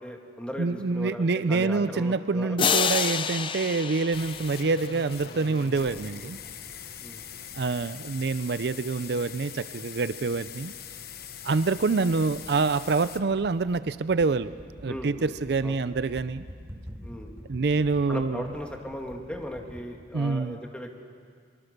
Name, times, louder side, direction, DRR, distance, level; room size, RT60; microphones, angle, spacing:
voice 1, 0.0-2.6 5.7-6.4 7.0-7.2 14.9-15.3 15.6-15.8 17.0-17.3 18.1-21.0, equal, 5° left, 2 dB, 2.1 m, -37 dB
voice 2, 0.6-6.4 7.5-10.7 11.4-14.5 14.8-16.4 17.5-18.4 20.1-20.6, right 4 dB, 65° right, 14 dB, 0.5 m, -26 dB
sound 1, 2.6-5.4, left 6 dB, 30° left, 0.6 m, -28 dB
sound 2, 4.1-13.2, left 7 dB, 60° left, 1.1 m, -42 dB
sound 3, 10.9-19.8, equal, 15° right, 2.7 m, -47 dB
24.0 x 23.0 x 6.7 m, 2.1 s
head